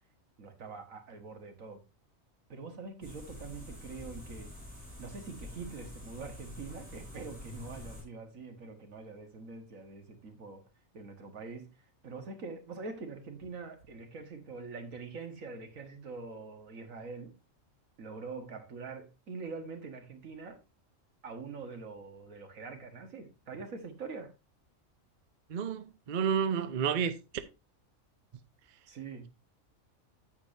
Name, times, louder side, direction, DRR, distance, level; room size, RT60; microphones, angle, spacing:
voice 1, 0.4-1.8 2.5-4.5 5.0-10.6 10.9-11.8 12.0-17.3 18.0-20.6 21.2-24.3 28.9-29.3, right 4 dB, 80° right, 1.9 m, -44 dB
sound 1, 3.0-8.0, left 1 dB, 5° left, 4.0 m, -47 dB
voice 2, 25.5-27.1, right 7 dB, 45° right, 0.7 m, -30 dB
9.4 x 8.3 x 2.6 m
omnidirectional pair, 1.4 m